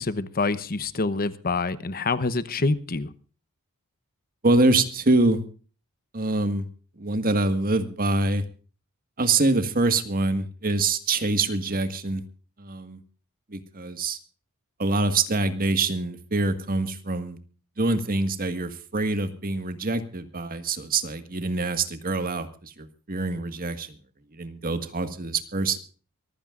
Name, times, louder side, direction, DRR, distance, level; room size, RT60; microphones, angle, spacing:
voice 1, 0.0-3.1, left 3 dB, 45° left, 14 dB, 0.9 m, -26 dB
voice 2, 4.4-5.4 6.1-6.7 7.0-8.4 9.2-12.2 12.6-13.0 13.5-14.2 14.8-17.4 17.8-24.0 24.3-25.8, right 2 dB, 40° right, 10 dB, 1.7 m, -25 dB
24.0 x 15.5 x 2.5 m, 0.37 s
head